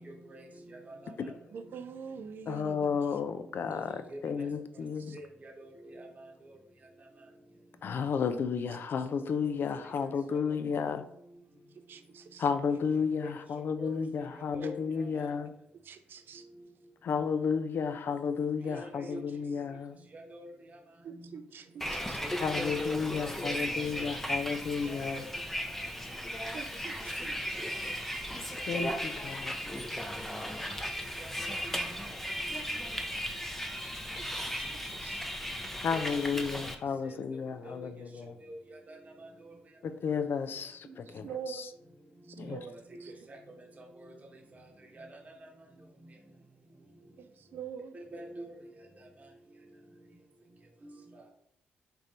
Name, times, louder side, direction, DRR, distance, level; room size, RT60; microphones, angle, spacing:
voice 1, 0.0-1.9 3.4-7.4 8.4-8.5 9.2-9.3 9.7-11.7 12.2-12.3 13.2-14.0 14.3-15.4 16.3-16.9 18.6-19.4 19.7-21.4 21.7-22.0 23.4-24.1 24.8-25.9 27.0-27.3 29.6-29.8 30.6-30.7 31.0-32.9 33.4-33.5 35.9-36.4 37.0-40.0 41.0-41.3 41.8-41.9 42.2-46.2 47.1-47.2 47.9-50.2 50.8-51.3, right 1 dB, 40° right, 1 dB, 0.9 m, -49 dB
voice 2, 1.5-3.2 5.1-5.2 8.7-8.8 11.7-12.5 14.6-14.7 15.8-16.5 21.0-22.2 26.5-27.5 28.6-28.9 29.3-29.4 32.5-32.6 34.1-35.3 40.8-41.8 42.2-42.7 43.0-43.1 47.2-48.0, right 7 dB, 65° right, 9 dB, 0.3 m, -45 dB
voice 3, 2.5-5.1 7.8-11.0 12.4-15.5 17.0-20.0 22.4-25.2 28.7-29.5 35.8-38.3 39.8-41.3 42.4-42.6, left 6 dB, 60° left, 10 dB, 0.4 m, -32 dB
Bus, 21.8-36.8, equal, 5° left, 0.6 m, -36 dB
3.3 x 2.6 x 4.2 m, 0.71 s
supercardioid pair, 60°, 4 cm